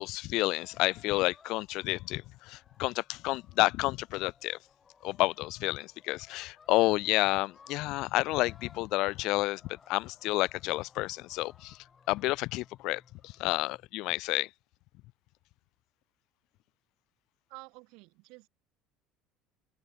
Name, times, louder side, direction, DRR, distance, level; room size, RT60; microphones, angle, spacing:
voice 1, 0.0-4.6 5.0-11.8 12.1-14.5, left 20 dB, 65° left, 0.8 m, -30 dB
sound 1, 0.6-13.9, left 6 dB, 30° left, 7.5 m, -61 dB
voice 2, 17.5-18.5, right 27 dB, 70° right, 4.5 m, -50 dB
open air
supercardioid pair, 85°, 0 cm